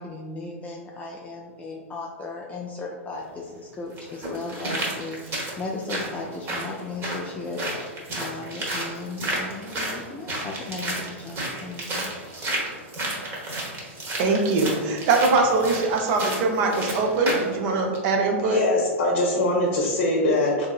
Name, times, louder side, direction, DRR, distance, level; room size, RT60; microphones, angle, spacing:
voice 1, 0.0-7.6 8.2-12.1, left 3 dB, 20° left, -1 dB, 0.3 m, -36 dB
sound 1, 3.1-3.2 4.0-17.5 17.9-18.0, right 1 dB, 30° right, 1.0 m, -32 dB
voice 2, 14.2-18.6, right 3 dB, 50° right, 2 dB, 0.6 m, -22 dB
voice 3, 18.5-20.7, left 1 dB, 60° left, -1 dB, 0.7 m, -22 dB
3.6 x 2.7 x 2.3 m, 1.5 s
hypercardioid pair, 110°, 7 cm